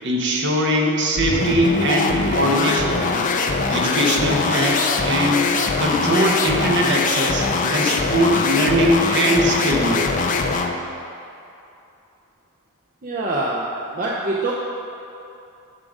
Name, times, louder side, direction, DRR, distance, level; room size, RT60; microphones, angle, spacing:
voice 1, 0.0-3.0 3.7-5.5 5.8-10.3, equal, 55° right, 0 dB, 1.0 m, -21 dB
sound 1, 1.2-10.8, left 4 dB, 40° left, 0.4 m, -22 dB
voice 2, 13.0-14.5, right 2 dB, 40° right, -4 dB, 0.6 m, -24 dB
9.7 x 3.8 x 5.0 m, 2.8 s
head